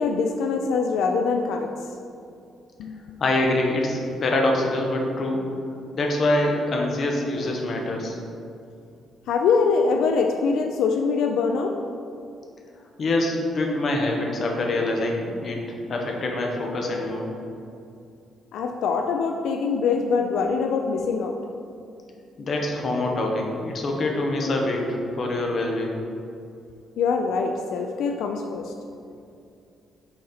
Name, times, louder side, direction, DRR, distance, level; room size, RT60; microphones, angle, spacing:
voice 1, 0.0-1.9 2.8-3.2 9.3-11.8 18.5-21.4 27.0-28.7, left 5 dB, 80° left, 4 dB, 0.3 m, -24 dB
voice 2, 3.2-5.4 5.9-8.2 13.0-15.6 15.9-17.3 22.4-25.9, left 2 dB, 40° left, 0 dB, 0.9 m, -25 dB
6.5 x 4.1 x 4.2 m, 2.5 s
cardioid pair, 165°, 0 cm